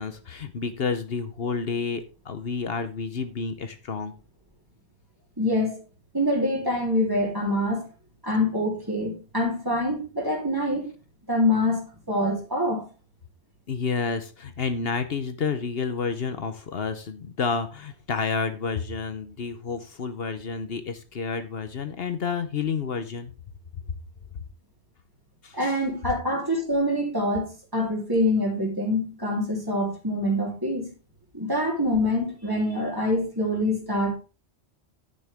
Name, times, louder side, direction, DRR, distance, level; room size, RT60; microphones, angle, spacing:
voice 1, 0.0-4.1 13.7-23.3 25.4-25.8, left 5 dB, 65° left, 1.1 m, -30 dB
voice 2, 5.4-5.8 6.1-7.9 8.2-10.9 11.3-12.9 25.5-30.9 31.3-34.2, left 1 dB, 20° right, 3.5 m, -25 dB
10.5 x 9.0 x 3.5 m
omnidirectional pair, 1.1 m